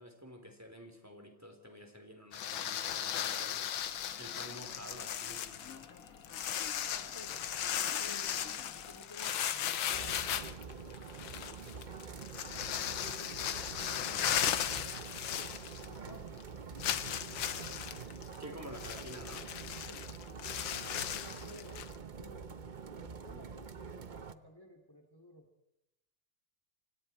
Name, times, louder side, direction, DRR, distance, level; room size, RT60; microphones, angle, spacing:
voice 1, 0.0-3.7 4.2-5.9 18.4-19.5, equal, 10° right, 4 dB, 3.4 m, -49 dB
sound 1, 2.3-16.1 16.4-16.5 16.8-22.0, left 10 dB, 90° left, 1.8 m, -37 dB
voice 2, 3.0-3.4 6.8-11.8 12.8-15.1 15.9-16.5 17.3-17.8 19.9-20.1 20.8-25.5, left 1 dB, 10° left, 2 dB, 2.1 m, -56 dB
Warsaw metro, 3.7-9.1, left 6 dB, 45° left, 1.8 m, -54 dB
sound 2, 9.9-24.3, right 5 dB, 55° right, 0.5 m, -46 dB
29.0 x 25.0 x 4.4 m, 0.90 s
omnidirectional pair, 2.1 m